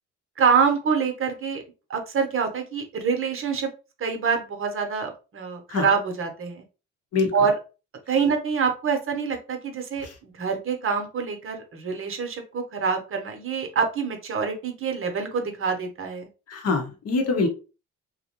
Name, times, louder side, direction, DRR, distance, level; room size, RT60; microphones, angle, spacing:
voice 1, 0.4-1.6 1.9-3.7 4.0-6.6 7.3-7.5 8.1-16.3, right 6 dB, 45° right, 4 dB, 0.7 m, -26 dB
voice 2, 16.5-17.5, left 4 dB, 55° left, 3 dB, 0.8 m, -24 dB
2.6 x 2.0 x 2.8 m, 0.32 s
cardioid pair, 90°, 30 cm